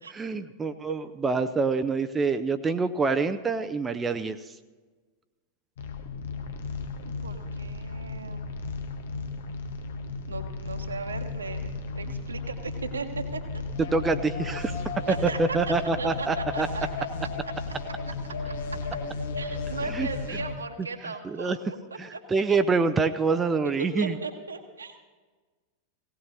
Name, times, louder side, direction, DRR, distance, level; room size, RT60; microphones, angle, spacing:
voice 1, 0.1-4.4 13.9-14.8 15.4-16.7 19.9-20.1 21.2-21.6 22.0-24.1, right 4 dB, 15° right, 9 dB, 0.5 m, -26 dB
sound 1, 5.8-20.6, left 3 dB, 60° left, 1.0 m, -34 dB
voice 2, 7.1-8.5 10.3-13.4 15.1-17.3 18.1-18.2 18.4-18.5 19.4-22.2 23.6-25.0, right 4 dB, 75° right, 5 dB, 1.3 m, -37 dB
18.0 x 17.0 x 2.8 m, 1.4 s
figure-of-eight pair, 90°, 0 cm